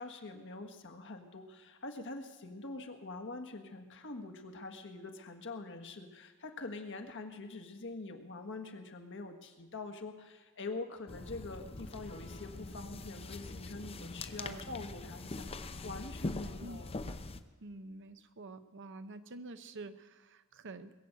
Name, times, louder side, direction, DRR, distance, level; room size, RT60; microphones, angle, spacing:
voice 1, 0.0-16.9, left 3 dB, 60° left, 5 dB, 1.6 m, -45 dB
sound 1, 11.1-17.4, left 2 dB, 25° left, 0.6 m, -43 dB
voice 2, 17.6-20.9, right 2 dB, 55° right, 11 dB, 0.8 m, -48 dB
20.5 x 7.8 x 8.0 m, 1.3 s
head